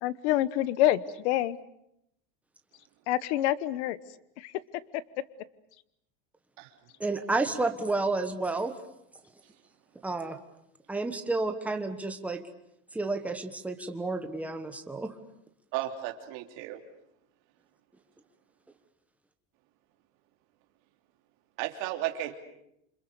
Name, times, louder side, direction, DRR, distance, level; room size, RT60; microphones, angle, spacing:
voice 1, 0.0-1.6 3.1-4.0 4.4-4.5 4.9-5.0, left 13 dB, 70° left, 17 dB, 1.2 m, -27 dB
voice 2, 7.0-8.7 10.0-10.4 10.9-12.4 12.9-15.1, right 3 dB, 5° right, 6 dB, 1.3 m, -30 dB
voice 3, 15.7-16.8 21.6-22.3, right 13 dB, 50° right, 3 dB, 3.1 m, -34 dB
28.5 x 25.5 x 6.9 m, 0.78 s
cardioid pair, 175°, 35 cm